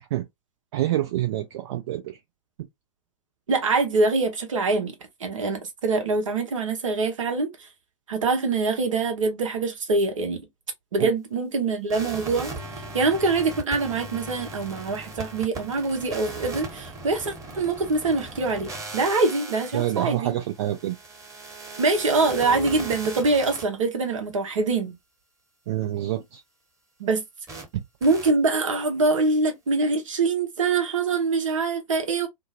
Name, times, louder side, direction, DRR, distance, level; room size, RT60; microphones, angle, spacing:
voice 1, 0.7-2.2 11.0-11.1 19.7-20.9 25.7-26.4 27.7-27.8, right 13 dB, 55° right, 0.5 m, -27 dB
voice 2, 3.5-4.9 5.2-7.5 8.1-10.4 10.9-12.5 12.9-20.3 21.8-24.9 27.0-27.2 28.0-32.3, right 3 dB, 70° right, 0.9 m, -24 dB
sound 1, 11.9-23.6 27.5-27.6 28.0-28.3, right 3 dB, 20° right, 1.1 m, -38 dB
2.6 x 2.0 x 2.7 m
figure-of-eight pair, 95°, 17 cm